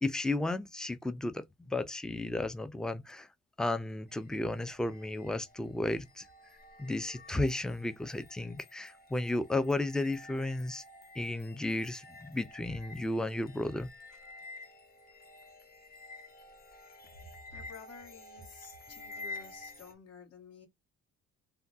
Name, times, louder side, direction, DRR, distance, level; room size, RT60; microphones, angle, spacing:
voice 1, 0.0-3.3 3.6-6.3 6.8-10.8 11.2-13.9, left 2 dB, ahead, 0.4 m, -33 dB
sound 1, 4.1-19.9, left 3 dB, 30° left, 0.8 m, -51 dB
voice 2, 17.5-20.7, left 4 dB, 55° left, 1.4 m, -51 dB
3.5 x 2.2 x 2.6 m
cardioid pair, 90°, 30 cm